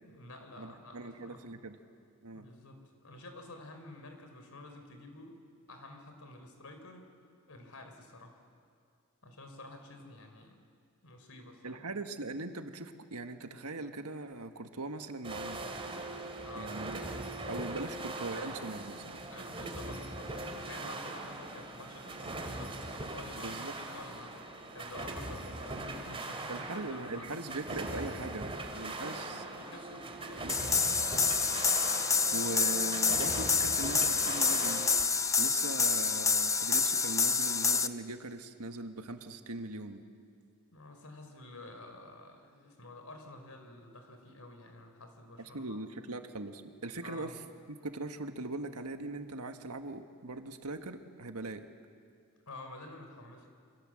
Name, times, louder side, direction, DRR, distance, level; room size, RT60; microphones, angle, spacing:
voice 1, 0.0-1.6 2.3-5.4 5.7-7.0 7.5-8.3 9.2-10.6 11.0-11.8 16.4-16.8 19.2-24.4 24.7-27.4 28.9-30.6 40.7-45.8 47.0-47.5 52.5-53.5, left 2 dB, 70° left, 5 dB, 4.0 m, -50 dB
voice 2, 0.6-1.8 2.2-2.5 11.6-15.6 16.2-17.0 17.5-19.2 23.3-23.7 26.5-29.4 30.4-30.6 32.0-34.9 35.4-40.0 45.5-47.4 47.7-51.7, right 2 dB, 85° right, 6 dB, 1.6 m, -40 dB
sound 1, 15.2-35.0, right 2 dB, 25° right, 2.5 m, -41 dB
sound 2, 30.5-37.9, left 5 dB, 15° left, 0.6 m, -28 dB
27.5 x 24.5 x 7.7 m, 2.3 s
head